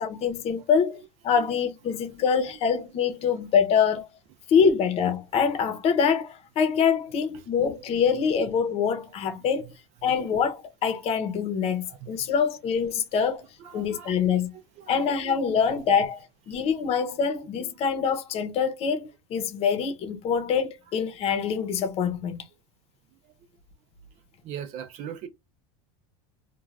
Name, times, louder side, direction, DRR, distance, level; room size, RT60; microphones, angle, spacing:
voice 1, 0.0-4.1 4.5-9.7 10.0-13.4 13.7-14.5 14.9-22.4, left 6 dB, 40° left, 0.8 m, -25 dB
voice 2, 11.9-12.3 13.6-14.1 14.8-15.2 24.4-25.3, right 9 dB, 45° right, 0.5 m, -40 dB
2.5 x 2.3 x 3.1 m
supercardioid pair, 130°, 15 cm